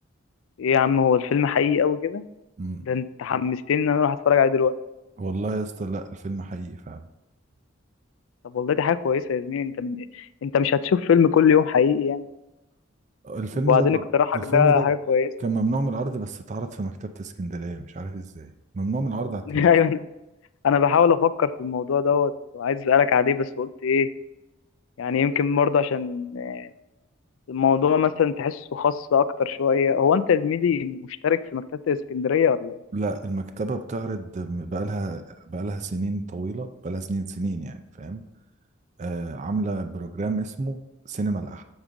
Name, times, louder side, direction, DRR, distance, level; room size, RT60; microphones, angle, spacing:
voice 1, 0.6-2.2 2.8-4.7 8.4-12.2 13.5-15.3 19.5-20.0 20.6-24.1 25.0-26.7 27.5-31.0 31.2-32.8, left 7 dB, 85° left, 14 dB, 0.4 m, -21 dB
voice 2, 5.2-7.1 13.2-14.0 14.3-14.9 15.4-19.7 32.9-38.2 39.0-41.6, right 2 dB, 35° right, 7 dB, 0.4 m, -29 dB
7.1 x 3.7 x 5.1 m, 0.96 s
head